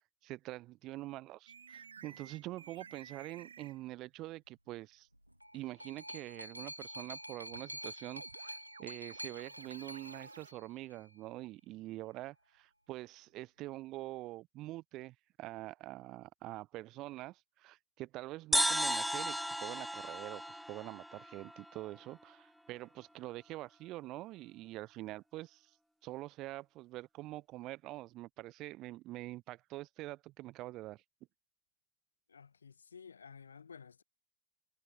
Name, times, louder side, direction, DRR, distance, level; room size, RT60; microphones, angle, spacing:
voice 1, 0.2-5.1 5.5-25.7 26.0-31.0, right 17 dB, 35° right, 2.2 m, -45 dB
sound 1, 1.5-3.8 7.5-10.5, right 6 dB, 70° right, 3.6 m, -55 dB
sound 2, 5.1-11.1 12.0-12.1, equal, 90° right, 0.4 m, -48 dB
sound 3, 18.5-22.0, equal, ahead, 0.5 m, -35 dB
voice 2, 32.3-34.0, left 6 dB, 70° left, 6.1 m, -53 dB
figure-of-eight pair, 90°, 0 cm